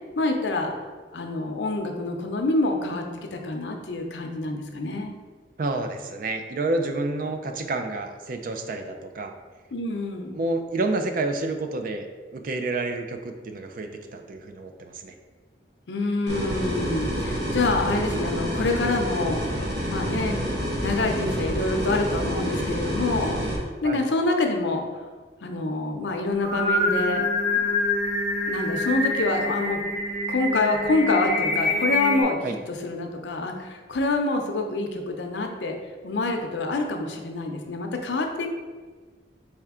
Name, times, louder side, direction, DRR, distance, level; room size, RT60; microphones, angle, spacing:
voice 1, 0.2-0.7 1.1-3.0 3.3-5.1 9.7-10.4 15.9-19.6 19.9-20.4 20.8-23.4 23.8-24.8 25.4-27.2 28.5-29.8 30.3-35.8 36.0-38.5, left 2 dB, 80° left, 3 dB, 0.6 m, -26 dB
voice 2, 5.6-9.3 10.3-12.1 12.3-15.1 23.8-24.0 32.4-32.6, right 2 dB, 50° right, 5 dB, 0.4 m, -29 dB
sound 1, 16.3-23.6, equal, 70° right, 1.0 m, -28 dB
Singing, 26.3-32.2, left 2 dB, 15° right, 1.3 m, -26 dB
4.3 x 3.4 x 3.6 m, 1.4 s
head